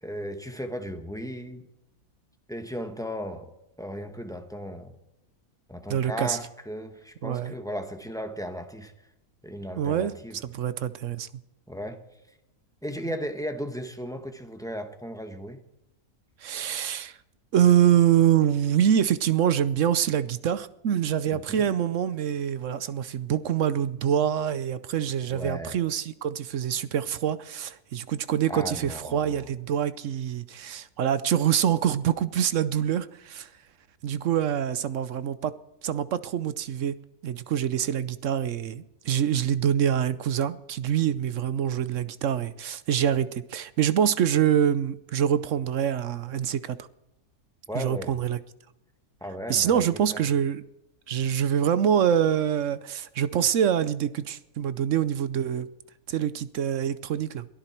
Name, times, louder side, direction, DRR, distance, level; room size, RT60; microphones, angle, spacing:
voice 1, 0.0-1.7 2.5-3.5 3.8-4.9 5.7-8.9 9.4-10.4 11.7-12.0 12.8-15.6 21.3-21.6 25.3-25.8 28.5-29.5 47.7-48.2 49.2-50.2, equal, ahead, 6 dB, 1.2 m, -36 dB
voice 2, 5.9-6.4 7.2-7.5 9.8-10.1 10.4-11.3 16.4-17.2 17.5-33.5 34.0-35.5 35.8-37.0 37.2-46.8 47.7-48.4 49.5-50.6 51.1-55.7 56.1-57.5, right 9 dB, 65° right, 15 dB, 0.9 m, -25 dB
22.5 x 13.0 x 4.5 m, 0.92 s
omnidirectional pair, 1.6 m